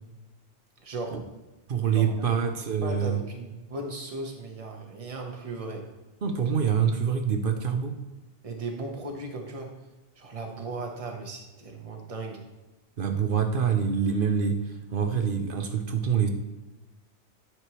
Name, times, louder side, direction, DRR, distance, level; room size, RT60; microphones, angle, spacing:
voice 1, 0.8-1.2 1.9-2.4 2.8-5.9 8.4-9.8 10.2-12.5, right 2 dB, 30° right, 2 dB, 1.1 m, -37 dB
voice 2, 1.7-3.2 6.2-7.9 13.0-16.3, right 7 dB, 55° right, 6 dB, 0.9 m, -26 dB
9.8 x 6.1 x 3.0 m, 1.1 s
omnidirectional pair, 1.2 m